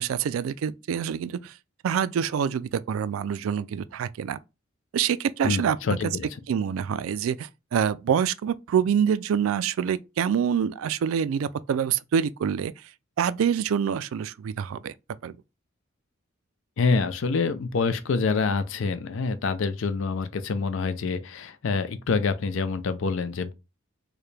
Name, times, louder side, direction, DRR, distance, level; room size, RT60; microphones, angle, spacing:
voice 1, 0.0-1.5 1.8-4.4 4.9-6.0 6.5-12.7 13.2-14.9 15.2-15.4, right 8 dB, 85° right, 0.3 m, -26 dB
voice 2, 5.4-6.3 16.8-23.5, left 4 dB, 70° left, 0.5 m, -26 dB
4.7 x 2.2 x 3.2 m
head